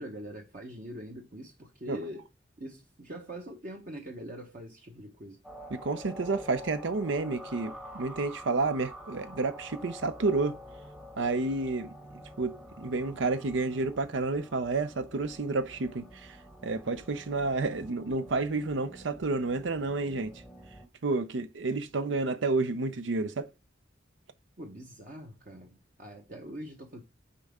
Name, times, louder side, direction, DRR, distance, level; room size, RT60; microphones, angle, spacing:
voice 1, 0.0-2.3 2.6-5.4 24.6-27.0, equal, 45° right, 1.0 m, -43 dB
sound 1, 5.4-20.9, equal, 5° right, 0.9 m, -47 dB
voice 2, 5.7-10.6 11.2-11.9 12.4-16.4 16.6-20.3 21.0-23.5, right 3 dB, 75° right, 0.6 m, -30 dB
9.8 x 4.2 x 3.6 m
head